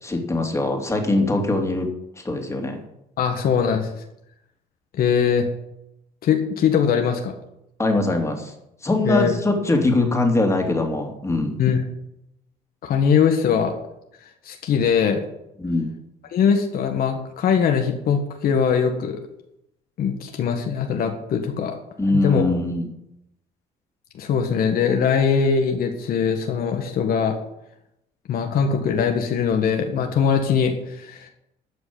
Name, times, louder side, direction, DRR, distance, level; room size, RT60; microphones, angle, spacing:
voice 1, 0.0-1.9 2.2-2.8 7.8-8.5 8.8-11.5 15.6-15.9 22.0-22.9, left 2 dB, 15° left, 3 dB, 2.8 m, -22 dB
voice 2, 3.2-3.9 5.0-5.5 6.2-7.3 9.0-9.3 11.6-11.8 12.8-13.7 14.4-15.2 16.3-19.2 20.0-21.8 22.1-22.5 24.2-27.4 28.3-31.3, left 6 dB, 60° left, 4 dB, 1.7 m, -21 dB
13.0 x 6.1 x 8.7 m, 0.83 s
cardioid pair, 110°, 17 cm